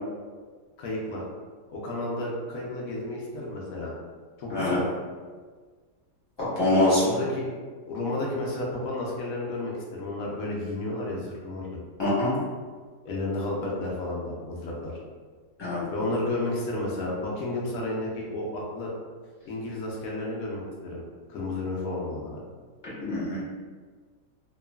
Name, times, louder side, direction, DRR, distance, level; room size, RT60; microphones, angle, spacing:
voice 1, 0.8-1.2 1.7-3.9 4.4-4.8 7.0-7.5 7.9-11.8 13.0-14.9 15.9-18.9 19.4-21.0 21.3-22.4, left 2 dB, 65° left, -3 dB, 0.9 m, -32 dB
voice 2, 4.5-4.8 6.5-7.0 12.0-12.3 15.6-15.8 23.0-23.4, left 2 dB, 20° left, -11 dB, 0.8 m, -23 dB
2.9 x 2.3 x 2.2 m, 1.5 s
omnidirectional pair, 1.8 m